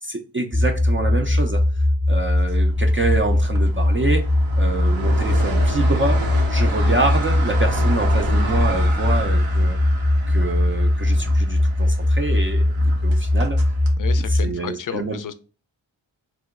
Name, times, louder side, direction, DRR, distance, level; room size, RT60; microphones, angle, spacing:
voice 1, 0.0-4.3 4.6-6.2 6.5-9.8 10.3-12.6 13.0-13.6 14.3-15.2, right 3 dB, 25° right, 2 dB, 0.4 m, -26 dB
sound 1, 0.5-14.5, left 1 dB, 10° left, 0.7 m, -19 dB
sound 2, 2.4-13.9, right 3 dB, 85° right, 0.8 m, -32 dB
voice 2, 14.0-15.3, left 8 dB, 45° left, 13 dB, 0.4 m, -32 dB
2.9 x 2.1 x 3.5 m, 0.37 s
cardioid pair, 50°, 46 cm